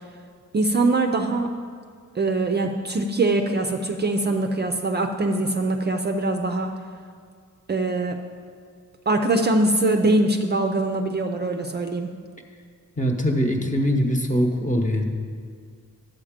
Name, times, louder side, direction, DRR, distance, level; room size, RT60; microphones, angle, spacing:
voice 1, 0.5-1.5 2.2-6.7 7.7-8.2 9.1-12.1, right 2 dB, 35° right, 4 dB, 0.5 m, -22 dB
voice 2, 13.0-15.0, equal, 25° left, 2 dB, 1.0 m, -22 dB
11.0 x 7.9 x 5.0 m, 2.1 s
wide cardioid pair, 160°, 32 cm